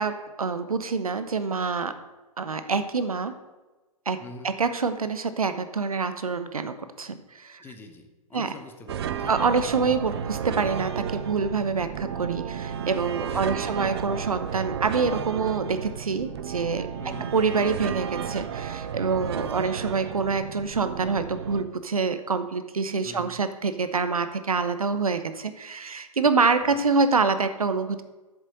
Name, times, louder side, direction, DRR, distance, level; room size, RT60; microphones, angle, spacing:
voice 1, 0.0-2.0 2.4-3.3 4.1-7.6 8.3-8.5 9.3-16.9 17.3-28.0, right 4 dB, 70° right, 11 dB, 1.0 m, -26 dB
voice 2, 4.2-4.5 7.6-10.0 13.2-13.8 17.0-17.4 19.5-19.7 23.0-23.4 26.6-26.8, left 2 dB, 10° left, 6 dB, 0.9 m, -44 dB
sound 1, 8.9-21.6, right 8 dB, 45° right, 0.7 m, -33 dB
7.6 x 7.5 x 7.6 m, 1.2 s
figure-of-eight pair, 120°, 19 cm